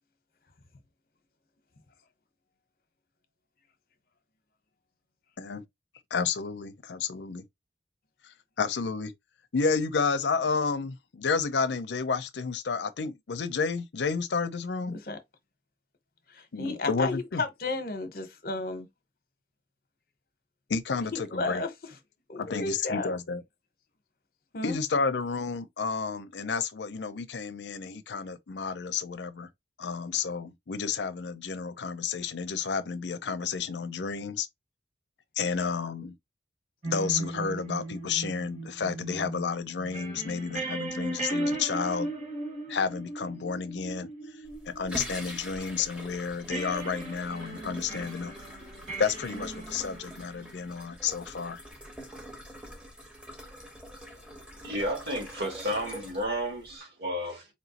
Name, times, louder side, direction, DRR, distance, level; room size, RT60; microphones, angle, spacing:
voice 1, 6.1-7.4 8.2-9.1 9.5-15.0 16.5-17.4 20.7-21.6 22.4-23.4 24.6-29.5 29.8-34.5 35.4-36.1 36.8-42.1 42.7-44.1 44.7-48.3 49.0-51.6, left 5 dB, 80° left, 0.5 m, -31 dB
voice 2, 16.3-18.9 21.1-21.7 22.3-23.2 24.5-24.8, left 3 dB, 50° left, 0.8 m, -33 dB
sound 1, 36.8-45.9 46.5-50.7, right 2 dB, 45° right, 1.5 m, -37 dB
sound 2, 44.4-56.8, equal, 5° right, 0.8 m, -44 dB
voice 3, 54.6-57.5, equal, 60° right, 1.9 m, -32 dB
4.3 x 3.0 x 2.8 m
head